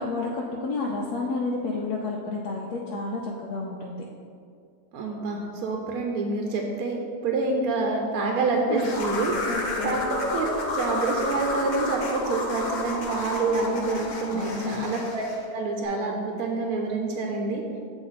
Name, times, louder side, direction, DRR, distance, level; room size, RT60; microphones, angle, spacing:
voice 1, 0.0-4.0 8.7-8.8 9.5-10.0 14.3-14.9, left 3 dB, 80° left, -2 dB, 1.1 m, -30 dB
voice 2, 4.9-9.3 9.8-10.0 10.3-15.3 15.5-17.6, right 3 dB, 75° right, 0 dB, 1.0 m, -27 dB
sound 1, 8.8-15.4, left 2 dB, 55° left, 0.5 m, -31 dB
7.9 x 3.0 x 4.0 m, 2.3 s
omnidirectional pair, 1.6 m